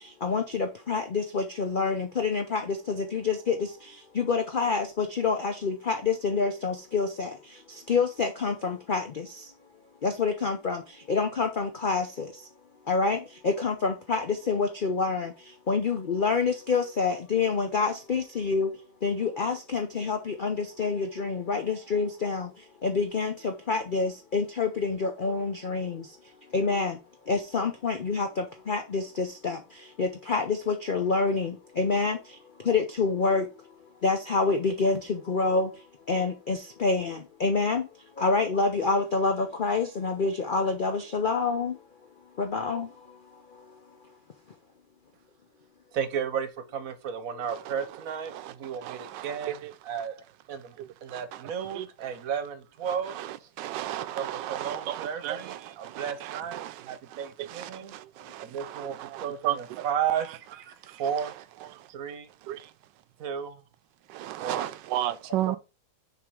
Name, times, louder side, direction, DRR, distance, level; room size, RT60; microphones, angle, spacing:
voice 1, 0.2-2.6 2.9-3.5 4.2-7.3 7.9-9.0 10.0-10.8 11.1-12.0 12.9-13.2 13.4-15.3 15.7-18.7 19.0-22.5 22.8-26.0 26.5-26.9 27.3-28.3 28.7-29.6 30.0-31.5 31.8-32.2 32.7-33.4 34.0-35.0 35.3-35.7 36.1-37.8 38.2-41.7 42.4-42.9, left 4 dB, 80° left, 0.4 m, -27 dB
voice 2, 45.9-50.2 50.5-53.5 54.0-57.9 58.4-61.3 61.9-62.3 63.2-63.6 64.4-64.7 65.4-65.6, right 8 dB, 60° right, 1.1 m, -34 dB
voice 3, 48.8-49.5 51.1-51.2 51.7-51.8 53.2-53.3 53.6-55.6 55.8-56.7 57.4-59.8 60.9-61.0 62.5-62.7 64.1-65.6, right 13 dB, 90° right, 1.3 m, -34 dB
6.7 x 3.6 x 4.7 m
omnidirectional pair, 1.9 m